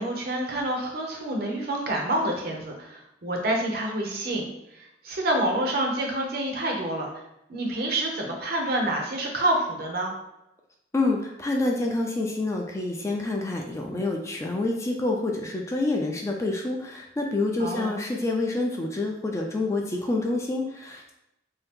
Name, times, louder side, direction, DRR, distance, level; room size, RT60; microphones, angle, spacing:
voice 1, 0.0-4.5 5.0-7.1 7.5-10.1 17.6-17.9, right 1 dB, 60° right, 1 dB, 0.7 m, -27 dB
voice 2, 10.9-21.1, left 2 dB, 15° left, 1 dB, 0.4 m, -27 dB
2.7 x 2.4 x 3.5 m, 0.87 s
head